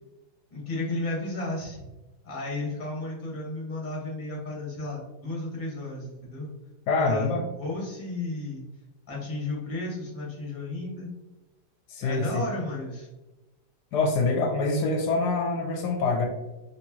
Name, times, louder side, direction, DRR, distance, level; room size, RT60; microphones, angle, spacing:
voice 1, 0.5-1.8 2.2-6.5 7.0-8.6 9.1-11.1 12.0-13.1, left 2 dB, 30° left, -4 dB, 1.3 m, -33 dB
voice 2, 6.9-7.4 11.9-12.4 13.9-16.3, left 3 dB, 80° left, 3 dB, 1.2 m, -25 dB
4.5 x 3.1 x 2.8 m, 1.1 s
omnidirectional pair, 1.8 m